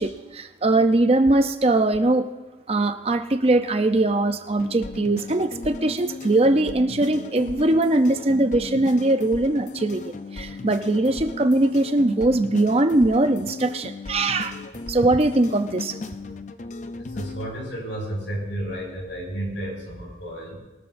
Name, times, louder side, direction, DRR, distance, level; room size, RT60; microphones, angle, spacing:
voice 1, 0.0-2.3 2.7-14.6 14.9-16.0, right 2 dB, 30° right, 8 dB, 0.6 m, -21 dB
sound 1, 4.6-17.5, left 3 dB, 40° left, 0.5 m, -36 dB
voice 2, 17.0-20.6, right 1 dB, 75° left, -1 dB, 5.4 m, -32 dB
22.0 x 13.0 x 2.6 m, 1.1 s
head